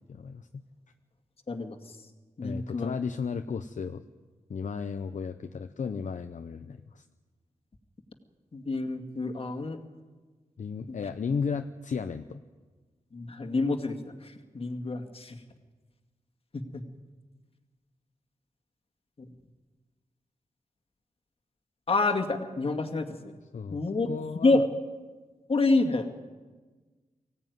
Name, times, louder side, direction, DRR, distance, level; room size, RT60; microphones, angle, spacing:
voice 1, 0.1-0.6 2.4-4.0 4.5-7.0 10.6-12.4 23.5-23.8 24.1-24.6, left 5 dB, 60° left, 7 dB, 0.8 m, -34 dB
voice 2, 1.5-1.8 2.4-2.9 8.5-9.8 10.9-11.0 13.1-15.4 16.5-16.8 19.2-19.3 21.9-23.3 23.7-24.1 24.3-24.6 25.5-26.1, left 3 dB, 45° left, 6 dB, 2.1 m, -28 dB
23.5 x 16.5 x 9.4 m, 1.4 s
wide cardioid pair, 145°, 14 cm